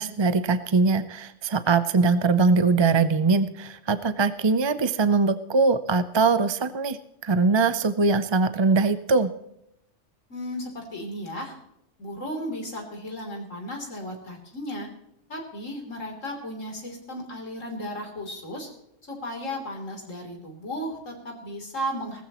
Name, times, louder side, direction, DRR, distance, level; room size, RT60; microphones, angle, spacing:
voice 1, 0.0-9.3, right 4 dB, 35° right, 12 dB, 0.4 m, -22 dB
voice 2, 10.3-11.6 12.0-14.9 15.3-18.7 19.1-22.2, equal, 85° left, 1 dB, 3.7 m, -35 dB
19.5 x 14.5 x 3.0 m, 0.80 s
omnidirectional pair, 1.3 m